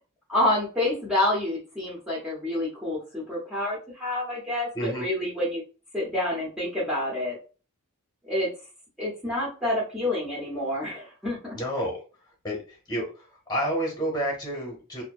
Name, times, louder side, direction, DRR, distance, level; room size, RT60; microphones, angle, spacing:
voice 1, 0.3-5.6 5.9-7.3 8.2-8.5 9.0-11.5, left 1 dB, 5° right, -7 dB, 0.7 m, -28 dB
voice 2, 4.7-5.1 11.5-12.0 12.4-12.6 12.9-15.0, equal, 20° left, -1 dB, 1.0 m, -29 dB
2.6 x 2.1 x 2.2 m, 0.34 s
head